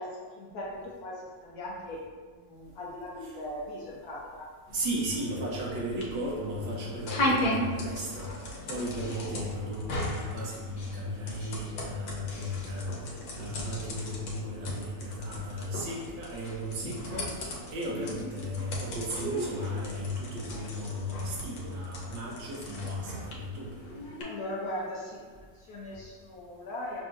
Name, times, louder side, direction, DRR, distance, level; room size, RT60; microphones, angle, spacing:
voice 1, 0.0-4.5 17.8-18.4 24.2-27.0, left 1 dB, 70° left, -4 dB, 0.9 m, -39 dB
sound 1, 4.7-24.2, left 1 dB, 85° left, 1.5 m, -37 dB
voice 2, 4.7-8.3 8.7-13.0 13.3-23.8, equal, 75° right, -3 dB, 1.4 m, -35 dB
5.7 x 2.6 x 2.5 m, 1.5 s
omnidirectional pair, 2.0 m